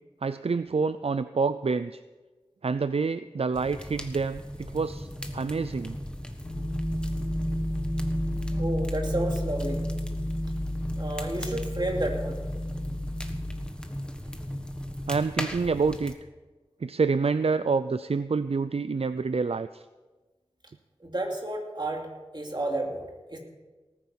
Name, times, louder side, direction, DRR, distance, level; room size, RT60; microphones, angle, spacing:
voice 1, 0.2-2.0 2.6-5.1 5.3-6.0 8.5-8.7 15.1-16.1 16.8-19.8, right 4 dB, 70° right, 13 dB, 0.4 m, -27 dB
sound 1, 3.5-16.1, equal, 10° left, 1.4 m, -38 dB
sound 2, 6.4-13.6, equal, 85° left, 3.7 m, -31 dB
voice 2, 8.6-9.8 11.0-12.4 21.0-22.1 22.3-23.0 23.3-23.4, right 1 dB, 45° right, 1 dB, 2.8 m, -31 dB
19.0 x 9.4 x 5.7 m, 1.2 s
wide cardioid pair, 40°, 11 cm